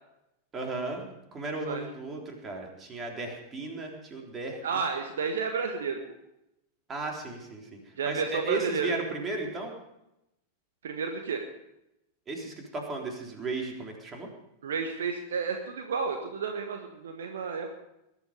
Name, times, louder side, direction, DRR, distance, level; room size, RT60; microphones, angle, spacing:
voice 1, 0.5-4.6 6.9-9.7 12.3-14.3, right 3 dB, 20° right, 1 dB, 3.8 m, -35 dB
voice 2, 4.6-6.0 8.0-8.9 10.8-11.4 14.6-17.7, right 5 dB, 65° right, 4 dB, 1.5 m, -31 dB
20.5 x 12.0 x 5.2 m, 0.86 s
figure-of-eight pair, 90°, 0 cm